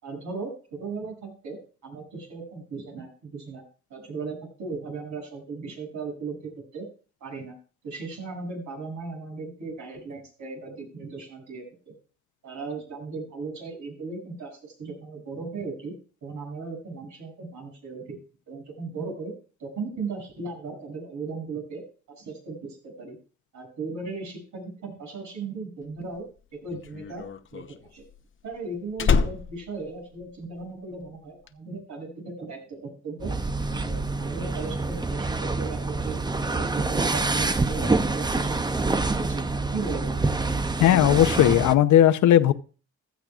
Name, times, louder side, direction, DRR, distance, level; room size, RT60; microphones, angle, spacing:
voice 1, 0.0-3.6 3.9-6.9 7.2-7.5 7.8-11.9 12.4-15.9 16.2-18.2 18.5-19.3 19.6-23.2 23.5-26.3 26.5-27.2 27.5-28.0 28.4-33.3 33.7-36.2 36.5-38.9 39.2-39.4 39.7-40.4, right 4 dB, 75° right, 7.2 m, -37 dB
Slam, 26.0-30.8 31.1-31.5, left 5 dB, 40° left, 0.8 m, -28 dB
sound 1, 33.2-41.8, right 3 dB, 15° right, 0.7 m, -26 dB
voice 2, 40.8-42.5, left 12 dB, 75° left, 0.8 m, -17 dB
15.5 x 13.0 x 2.4 m
cardioid pair, 90°, 30 cm